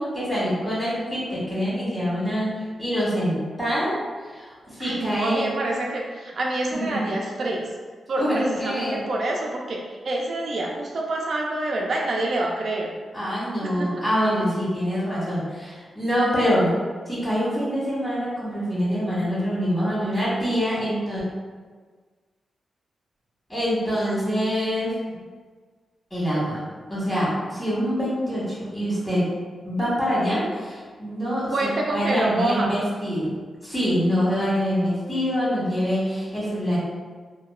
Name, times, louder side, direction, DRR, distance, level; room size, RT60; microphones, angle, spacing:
voice 1, 0.0-5.4 6.7-7.1 8.2-9.0 13.1-16.7 17.1-21.2 23.5-24.9 26.1-26.6 26.9-29.3 29.6-33.3 33.6-36.8, equal, 15° left, -9 dB, 1.4 m, -25 dB
voice 2, 4.8-7.7 8.1-12.9 13.6-13.9 31.5-32.8, right 2 dB, 60° right, -1 dB, 0.3 m, -27 dB
2.7 x 2.2 x 2.3 m, 1.5 s
cardioid pair, 80°, 0 cm